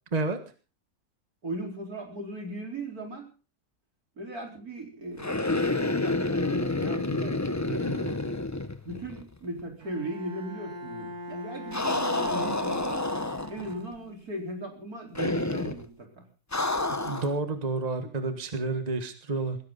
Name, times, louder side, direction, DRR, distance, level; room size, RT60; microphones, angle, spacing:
voice 1, 1.4-3.3 4.2-8.2 8.8-13.1 13.5-16.3 18.0-18.1, right 1 dB, 70° right, 2 dB, 4.9 m, -38 dB
sound 1, 5.2-9.3 9.6-9.7 11.7-13.7 15.2-15.8 16.5-17.4, left 2 dB, 15° left, 0.8 m, -29 dB
Bowed string instrument, 9.8-14.3, left 1 dB, 90° right, 4.0 m, -41 dB
voice 2, 16.9-19.6, right 3 dB, 25° right, 8 dB, 1.6 m, -30 dB
19.5 x 16.5 x 4.0 m, 0.35 s
omnidirectional pair, 1.6 m